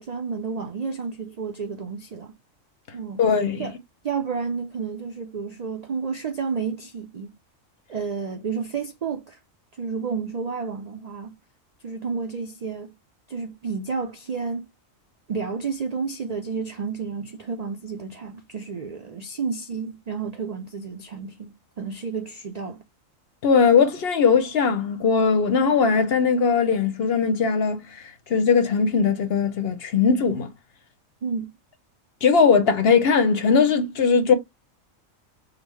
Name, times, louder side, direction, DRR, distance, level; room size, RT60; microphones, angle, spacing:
voice 1, 0.0-2.4 2.9-3.2 3.6-3.7 4.0-7.3 7.9-9.4 9.8-11.4 11.8-12.9 13.3-14.7 15.3-21.5 21.8-22.8 31.2-31.5, right 5 dB, 65° right, 0.4 m, -31 dB
voice 2, 3.2-3.7 23.4-27.8 28.3-30.5 32.2-34.3, left 5 dB, 60° left, 0.8 m, -19 dB
5.0 x 2.1 x 3.1 m
omnidirectional pair, 1.4 m